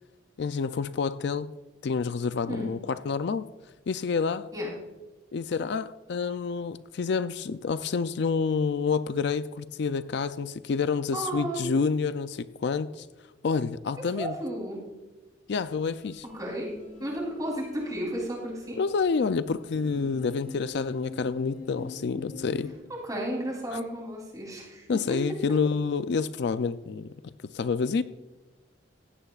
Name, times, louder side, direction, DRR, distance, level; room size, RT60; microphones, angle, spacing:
voice 1, 0.4-1.5 1.8-3.5 3.9-4.5 5.3-13.1 13.4-14.3 15.5-16.2 18.8-22.7 23.7-23.8 24.9-28.0, left 5 dB, 60° left, 13 dB, 0.4 m, -28 dB
voice 2, 11.1-11.6 14.0-14.8 16.3-16.7 17.0-18.8 22.9-25.2, right 1 dB, 20° right, -2 dB, 3.3 m, -33 dB
sound 1, 15.6-22.7, left 3 dB, 40° left, 1.3 m, -44 dB
15.5 x 15.5 x 2.4 m, 1.1 s
head